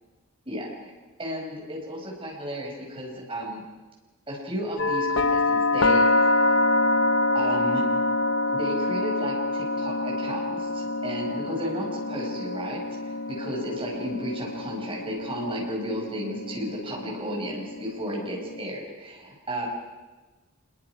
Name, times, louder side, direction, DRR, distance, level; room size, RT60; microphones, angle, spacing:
voice 1, 0.5-0.9 1.2-3.6 4.3-6.4 7.3-7.8 8.5-19.7, equal, 25° right, -3 dB, 5.6 m, -33 dB
sound 1, 4.8-18.7, left 2 dB, 60° left, 0.8 m, -26 dB
26.0 x 22.0 x 5.0 m, 1.2 s
head